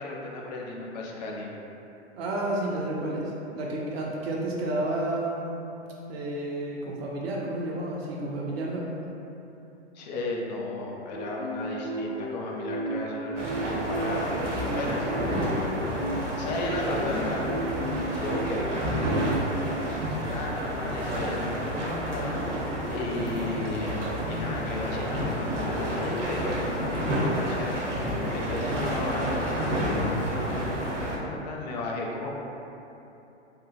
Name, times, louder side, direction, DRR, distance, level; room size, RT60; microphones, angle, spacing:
voice 1, 0.0-1.5 9.9-14.3 14.7-15.0 16.4-17.4 18.1-18.7 20.2-32.3, left 2 dB, 40° left, -1 dB, 0.4 m, -34 dB
voice 2, 2.2-5.6 6.1-8.9 19.0-19.3, right 1 dB, 60° right, -4 dB, 0.5 m, -31 dB
sound 1, 11.1-19.9, right 2 dB, 85° left, 0.7 m, -34 dB
sound 2, 13.4-31.2, equal, 85° right, 0.8 m, -30 dB
2.8 x 2.0 x 2.8 m, 2.9 s
hypercardioid pair, 115°, 36 cm